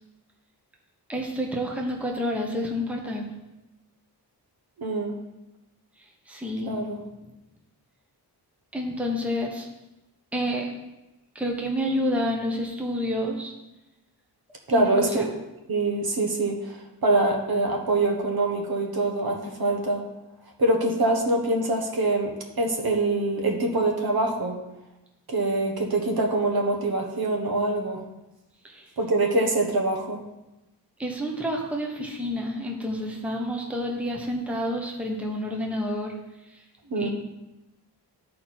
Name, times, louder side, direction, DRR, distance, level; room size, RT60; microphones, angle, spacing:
voice 1, 1.1-3.3 6.3-6.8 8.7-9.7 10.3-10.7 11.3-13.5 14.7-15.3 28.6-28.9 31.0-36.2 36.5-36.6 36.9-37.1, equal, 5° right, 0 dB, 1.0 m, -29 dB
voice 2, 4.8-5.1 6.6-7.0 14.7-15.2 15.7-20.0 20.6-24.6 25.3-28.0 29.0-30.2 36.9-37.1, right 2 dB, 60° right, 1 dB, 1.3 m, -24 dB
12.0 x 4.5 x 4.4 m, 0.99 s
wide cardioid pair, 145°, 41 cm